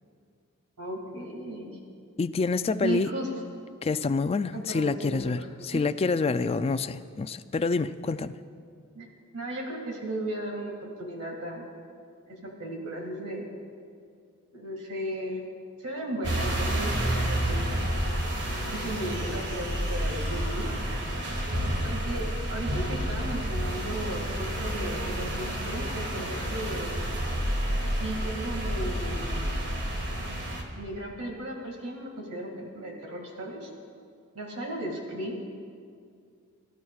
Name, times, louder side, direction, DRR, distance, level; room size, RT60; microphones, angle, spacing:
voice 1, 0.8-1.8 2.8-3.3 4.5-5.5 5.7-5.8 8.9-9.1 9.3-11.7 12.3-13.4 14.5-15.5 15.8-17.7 18.7-20.8 21.8-27.0 27.9-29.5 30.8-33.7 34.3-35.4, right 1 dB, 90° right, 2.2 m, -35 dB
voice 2, 2.2-3.1 3.8-8.4, left 4 dB, 25° left, 0.3 m, -27 dB
sound 1, 16.2-30.6, equal, 55° right, 1.8 m, -30 dB
24.0 x 12.5 x 2.4 m
head